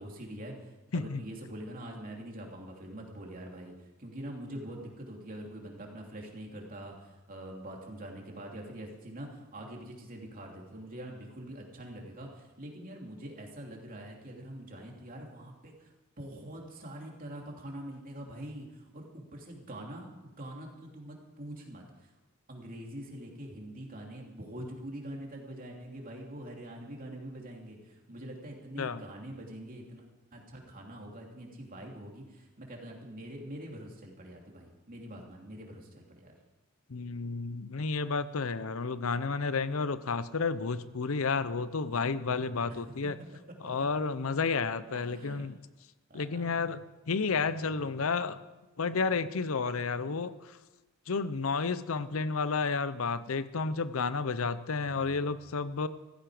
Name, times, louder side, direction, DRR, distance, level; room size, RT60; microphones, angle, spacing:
voice 1, 0.0-22.1 22.5-36.3 44.9-45.5 46.1-46.6 54.8-55.4, right 1 dB, 40° right, 0 dB, 3.0 m, -44 dB
voice 2, 36.9-43.2 43.6-45.6 46.1-48.4 48.8-50.6 51.1-55.9, left 4 dB, 70° left, 14 dB, 0.7 m, -31 dB
15.0 x 15.0 x 5.0 m, 1.1 s
head